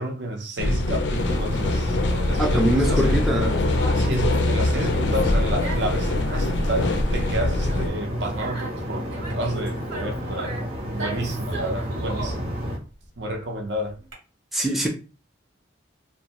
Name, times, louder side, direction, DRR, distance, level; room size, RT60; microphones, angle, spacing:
voice 1, 0.0-3.2 3.9-12.5 13.2-14.0, right 1 dB, 65° right, 0.6 m, -30 dB
sound 1, 0.6-7.9, left 2 dB, 65° left, 0.4 m, -23 dB
sound 2, 1.1-12.8, equal, 30° right, 0.7 m, -31 dB
voice 2, 2.4-3.5 14.5-14.9, right 1 dB, ahead, 0.4 m, -23 dB
Conversation, 3.6-14.1, right 2 dB, 85° right, 1.2 m, -37 dB
2.6 x 2.1 x 2.9 m
head